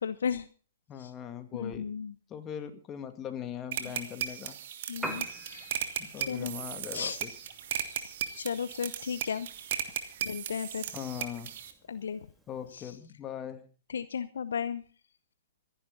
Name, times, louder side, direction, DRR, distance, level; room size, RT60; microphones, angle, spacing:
voice 1, 0.0-0.5 1.0-1.1 1.6-2.1 4.9-5.6 6.2-6.6 6.9-7.2 8.4-9.5 10.2-10.8 11.9-12.2 12.7-12.8 13.9-14.8, left 7 dB, 70° left, 14 dB, 0.8 m, -34 dB
voice 2, 0.9-1.9 2.3-4.6 6.0-7.3 10.9-11.5 12.5-13.6, left 9 dB, 25° left, 7 dB, 2.3 m, -40 dB
sound 1, 3.7-11.7, right 10 dB, 55° right, 2.0 m, -36 dB
Piano, 4.9-13.0, right 1 dB, 5° right, 2.3 m, -48 dB
25.5 x 10.5 x 4.0 m, 0.38 s
figure-of-eight pair, 115°, 0 cm